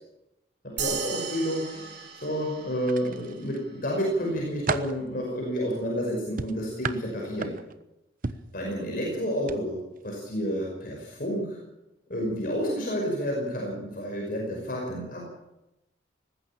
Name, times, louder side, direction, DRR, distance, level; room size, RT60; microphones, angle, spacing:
voice 1, 0.6-7.5 8.5-9.8 10.0-11.6 12.1-15.2, equal, 50° left, -1 dB, 5.5 m, -30 dB
sound 1, 0.8-3.5, right 7 dB, 70° right, 3.6 m, -36 dB
sound 2, 2.8-3.6 4.1-5.0 6.4-7.8 8.2-8.5 9.4-9.6 10.0-10.1, right 3 dB, 45° right, 1.0 m, -33 dB
19.5 x 15.0 x 8.8 m, 0.92 s
head